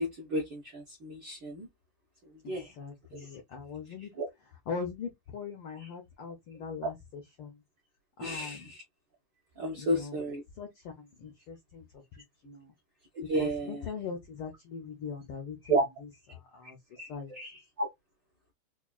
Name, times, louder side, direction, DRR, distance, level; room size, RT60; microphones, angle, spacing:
voice 1, 0.0-1.7 2.5-2.7 3.1-3.2 4.2-4.3 8.2-8.8 9.6-10.4 13.1-13.8 15.7-15.8 17.0-17.9, right 1 dB, 65° right, 1.1 m, -32 dB
voice 2, 2.4-4.1 4.7-7.5 8.2-8.7 9.8-10.2 10.6-12.0 12.4-12.7 13.4-16.8 17.1-17.3, left 6 dB, 75° left, 1.2 m, -41 dB
4.7 x 2.4 x 2.3 m
omnidirectional pair, 3.4 m